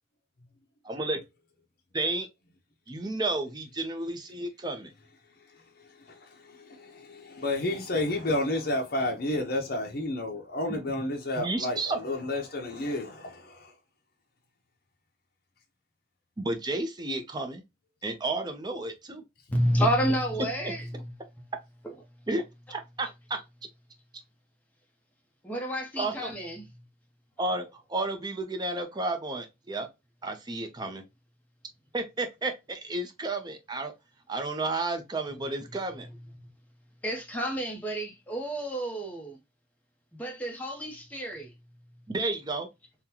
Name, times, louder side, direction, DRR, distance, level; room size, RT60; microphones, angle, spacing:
voice 1, 0.8-1.2 1.9-2.3 2.9-4.9 10.7-11.0 11.4-12.0 16.4-17.6 18.0-19.2 22.3-22.4 22.7-23.4 26.0-26.3 27.4-29.9 30.2-31.0 31.9-33.9 34.3-36.1 42.1-42.7, right 2 dB, 25° right, 0.6 m, -32 dB
voice 2, 6.7-13.7, left 1 dB, 55° left, 0.7 m, -31 dB
voice 3, 19.5-21.1 21.8-21.9 25.4-26.8 36.0-36.5 37.0-39.4 40.1-41.5, equal, 10° left, 0.8 m, -30 dB
3.7 x 2.2 x 2.8 m
head